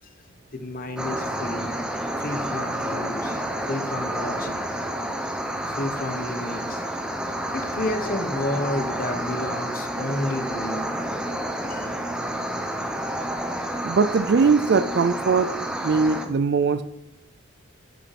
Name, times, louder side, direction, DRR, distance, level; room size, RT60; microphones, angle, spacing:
voice 1, 0.5-1.7 2.2-4.6 5.6-6.9 7.5-10.9 11.7-11.9, left 1 dB, 45° left, 1.0 m, -31 dB
sound 1, 1.0-16.3, right 1 dB, 5° right, 0.7 m, -29 dB
voice 2, 13.8-15.5 15.8-16.8, right 5 dB, 55° right, 0.4 m, -20 dB
9.7 x 6.6 x 4.1 m
head